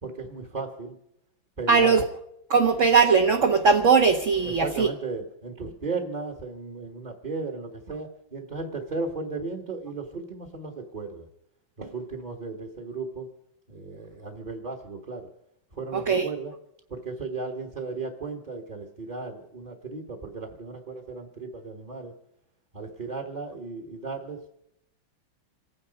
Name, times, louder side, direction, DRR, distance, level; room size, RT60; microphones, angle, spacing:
voice 1, 0.0-1.0 1.6-2.0 4.4-11.3 11.8-13.3 13.7-15.3 15.7-16.5 16.9-22.1 22.7-24.5, right 3 dB, 25° right, 1 dB, 1.4 m, -35 dB
voice 2, 1.7-2.0 2.5-4.9 15.9-16.2, right 5 dB, 45° right, 3 dB, 1.2 m, -19 dB
28.0 x 9.8 x 5.2 m, 0.80 s
omnidirectional pair, 2.1 m